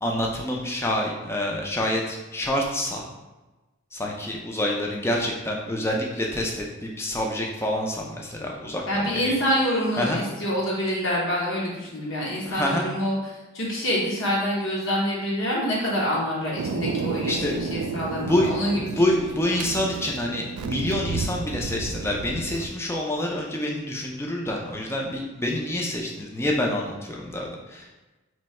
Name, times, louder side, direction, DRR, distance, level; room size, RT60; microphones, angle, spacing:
voice 1, 0.0-3.1 3.9-9.3 10.0-10.2 12.5-12.9 17.3-17.6 18.3-27.8, left 1 dB, 10° left, -1 dB, 0.4 m, -27 dB
voice 2, 8.9-19.2, equal, 55° left, -5 dB, 0.8 m, -26 dB
Thunder, 16.6-22.7, right 4 dB, 80° right, 0.3 m, -32 dB
3.0 x 2.7 x 4.2 m, 1.1 s
head